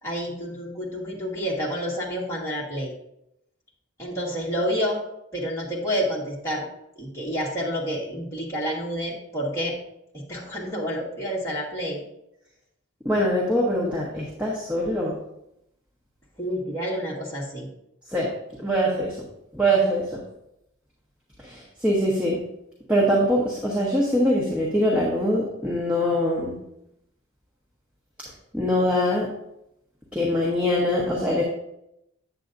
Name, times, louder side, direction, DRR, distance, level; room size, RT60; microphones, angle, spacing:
voice 1, 0.0-2.9 4.0-5.0 5.3-6.7 6.9-9.7 10.1-12.0 16.4-17.7, equal, 15° left, -6 dB, 1.5 m, -29 dB
voice 2, 13.0-15.2 18.1-18.3 18.6-19.2 19.5-20.2 21.4-22.4 22.9-26.6 28.5-29.3 30.1-31.4, equal, 5° right, -5 dB, 1.0 m, -23 dB
8.3 x 7.7 x 2.6 m, 0.81 s
head